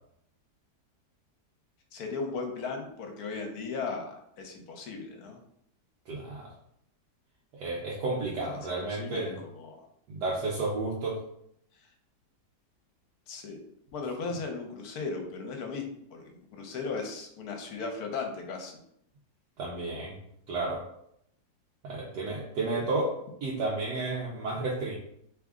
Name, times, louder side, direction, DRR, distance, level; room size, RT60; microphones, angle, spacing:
voice 1, 1.9-5.4 8.5-8.6 8.9-9.9 13.3-13.6 13.9-18.8, left 4 dB, 70° left, 3 dB, 1.1 m, -37 dB
voice 2, 6.1-6.5 7.5-9.4 10.1-11.2 19.6-20.2 20.5-20.8 21.8-23.2 23.4-25.0, right 2 dB, 85° right, -4 dB, 1.3 m, -32 dB
3.5 x 3.2 x 3.6 m, 0.75 s
omnidirectional pair, 1.8 m